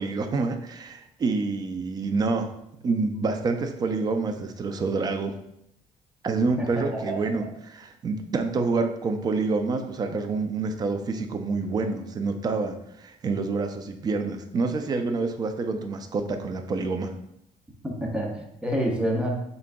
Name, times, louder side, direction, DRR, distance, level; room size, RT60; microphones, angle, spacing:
voice 1, 0.0-2.5 2.8-5.4 6.2-17.1, right 4 dB, 30° right, 6 dB, 0.4 m, -27 dB
voice 2, 6.6-7.3 17.8-19.3, equal, 5° right, -1 dB, 0.8 m, -28 dB
6.0 x 3.7 x 2.2 m, 0.77 s
cardioid pair, 150°, 14 cm